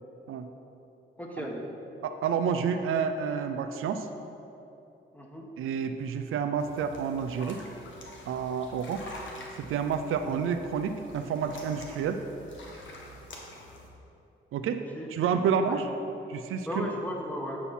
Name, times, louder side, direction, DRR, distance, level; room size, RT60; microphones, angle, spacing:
voice 1, 1.2-1.7 5.1-5.5 14.7-15.1 15.6-15.8 16.7-17.6, equal, 5° left, 0 dB, 1.3 m, -36 dB
voice 2, 2.0-4.1 5.6-7.6 8.3-9.0 9.6-12.2 14.5-14.8 15.1-15.9 16.3-16.9, right 6 dB, 80° right, 7 dB, 0.4 m, -29 dB
sound 1, 6.6-13.9, left 1 dB, 65° left, 1.3 m, -47 dB
8.4 x 5.5 x 4.3 m, 2.9 s
cardioid pair, 60°, 21 cm